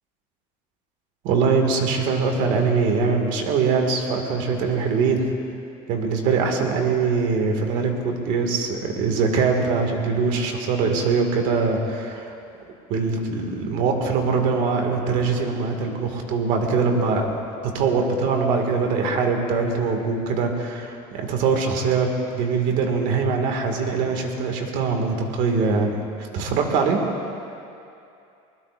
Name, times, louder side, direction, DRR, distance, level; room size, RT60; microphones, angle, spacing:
voice 1, 1.2-5.2 5.9-12.3 12.9-17.3 17.6-22.1 22.3-27.0, right 4 dB, 50° right, 3 dB, 2.1 m, -22 dB
22.5 x 20.5 x 2.6 m, 2.7 s
cardioid pair, 160°, 17 cm